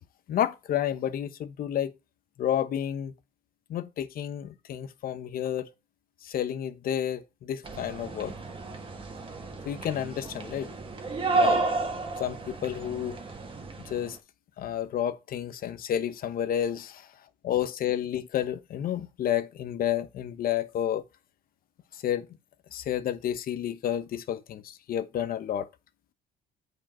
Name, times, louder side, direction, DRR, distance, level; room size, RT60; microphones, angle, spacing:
voice 1, 0.3-1.9 2.4-3.1 3.7-5.7 6.2-8.3 9.6-10.7 11.3-11.6 12.2-13.2 13.8-14.2 14.6-17.1 17.4-21.0 21.9-22.3 22.7-25.7, left 10 dB, 60° left, 1.0 m, -30 dB
sound 1, 7.6-14.2, right 3 dB, 30° right, 1.8 m, -31 dB
8.5 x 5.1 x 4.4 m
cardioid pair, 110°, 17 cm